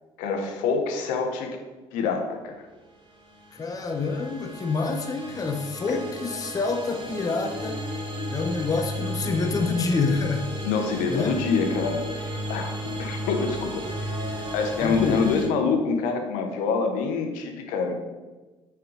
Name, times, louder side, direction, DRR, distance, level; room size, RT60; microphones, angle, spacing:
voice 1, 0.2-1.6 1.9-2.6 5.9-6.0 10.6-12.7 13.0-17.9, left 5 dB, 60° left, 4 dB, 0.9 m, -26 dB
sound 1, 3.2-15.5, equal, 35° right, 1.4 m, -34 dB
voice 2, 3.5-8.0 8.3-10.5 11.1-11.4 14.8-15.3, left 4 dB, 25° left, 5 dB, 0.6 m, -27 dB
5.8 x 3.6 x 5.1 m, 1.2 s
figure-of-eight pair, 50°, 15 cm